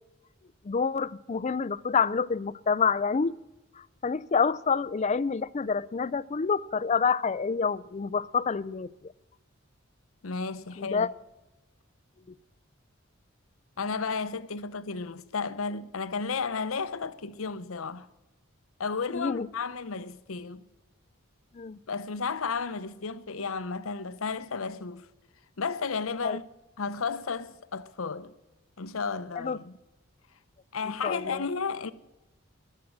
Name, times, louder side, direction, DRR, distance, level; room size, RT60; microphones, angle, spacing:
voice 1, 0.6-3.4 3.7-9.1 10.8-11.1 12.3-12.4 19.1-19.5 21.5-21.8 26.2-26.4 29.4-29.6 31.0-31.5, left 5 dB, 35° left, 0.4 m, -28 dB
voice 2, 10.2-11.1 13.8-18.1 18.8-20.6 21.9-25.1 25.6-26.4 26.8-28.3 28.8-29.7 30.7-31.9, left 5 dB, 80° left, 0.8 m, -33 dB
20.5 x 7.5 x 7.3 m
head